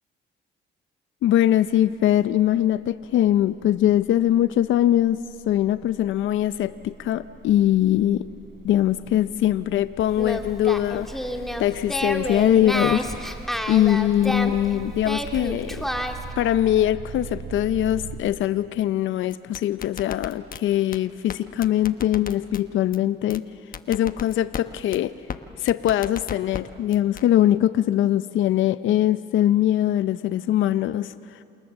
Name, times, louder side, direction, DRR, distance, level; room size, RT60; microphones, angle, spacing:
voice 1, 1.2-5.2 5.5-8.3 8.6-13.0 13.7-15.9 16.4-23.4 23.9-25.1 25.6-31.4, left 12 dB, 75° left, 14 dB, 0.6 m, -22 dB
sound 1, 1.5-1.8 2.1-18.2, right 6 dB, 70° right, 3.8 m, -42 dB
Singing, 10.1-16.3, equal, ahead, 2.2 m, -30 dB
sound 2, 19.3-20.6 20.9-21.0 21.3-21.4 21.6-22.6 22.9-23.0 23.3-23.4 23.7-24.6 24.9-25.0 25.3-25.4 25.7-26.6 26.9-27.2, left 7 dB, 45° left, 1.1 m, -34 dB
28.0 x 28.0 x 7.3 m, 2.6 s
cardioid pair, 90°, 20 cm